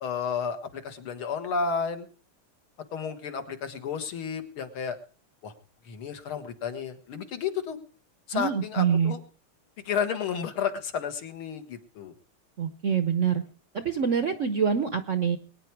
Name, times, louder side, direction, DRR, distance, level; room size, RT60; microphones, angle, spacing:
voice 1, 0.0-2.1 2.9-5.0 5.4-5.5 5.9-7.8 8.3-9.2 9.8-12.1, left 6 dB, 80° left, 7 dB, 2.3 m, -32 dB
voice 2, 8.3-9.1 12.6-13.4 13.7-15.4, right 7 dB, 60° right, 10 dB, 0.8 m, -25 dB
22.0 x 9.6 x 4.6 m, 0.39 s
omnidirectional pair, 2.3 m